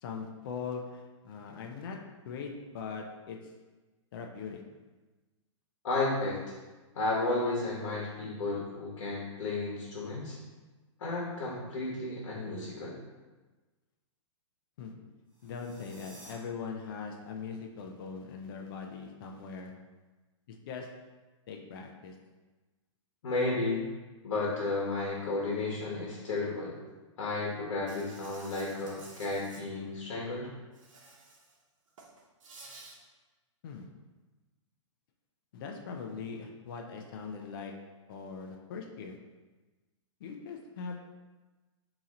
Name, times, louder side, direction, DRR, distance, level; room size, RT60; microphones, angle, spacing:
voice 1, 0.0-2.0 2.2-3.4 4.1-4.6 14.8-14.9 15.4-19.7 20.5-20.9 21.5-22.1 33.6-33.9 35.5-37.7 38.1-39.2 40.2-41.0, left 5 dB, 45° left, 2 dB, 0.5 m, -41 dB
voice 2, 5.8-6.4 6.9-10.4 11.0-12.9 23.2-23.8 24.2-26.7 27.2-30.5, left 2 dB, 65° left, -4 dB, 1.2 m, -33 dB
sound 1, 15.3-16.3, right 1 dB, 10° right, 0.5 m, -53 dB
Insect, 27.9-29.6 30.7-31.5 31.9-33.0, right 3 dB, 80° right, 0.9 m, -52 dB
4.1 x 2.9 x 3.7 m, 1.2 s
hypercardioid pair, 165°, 16 cm